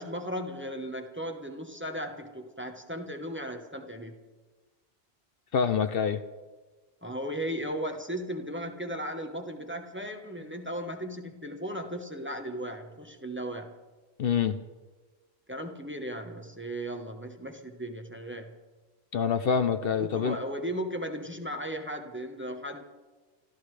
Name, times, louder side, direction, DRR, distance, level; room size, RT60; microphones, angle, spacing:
voice 1, 0.0-4.2 7.0-13.7 15.5-18.5 20.0-22.8, equal, 10° right, 3 dB, 1.1 m, -36 dB
voice 2, 5.5-6.2 14.2-14.6 19.1-20.4, left 6 dB, 65° left, 10 dB, 0.8 m, -26 dB
27.5 x 13.5 x 3.3 m, 1.3 s
omnidirectional pair, 1.1 m